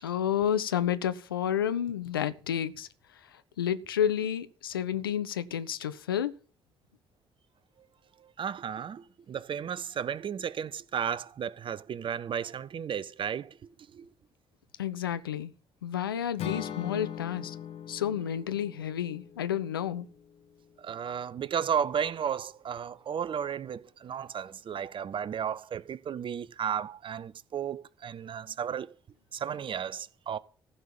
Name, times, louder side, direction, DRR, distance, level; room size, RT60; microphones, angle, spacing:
voice 1, 0.0-2.9 3.6-6.3 14.8-15.5 15.8-17.6 17.9-20.1, left 9 dB, 85° left, 0.5 m, -30 dB
voice 2, 8.4-13.5 13.9-14.1 20.8-28.9 29.3-30.4, right 8 dB, 45° right, 0.7 m, -33 dB
Acoustic guitar / Strum, 16.4-20.5, left 10 dB, 60° left, 1.0 m, -41 dB
15.0 x 5.5 x 7.4 m
figure-of-eight pair, 45°, 12 cm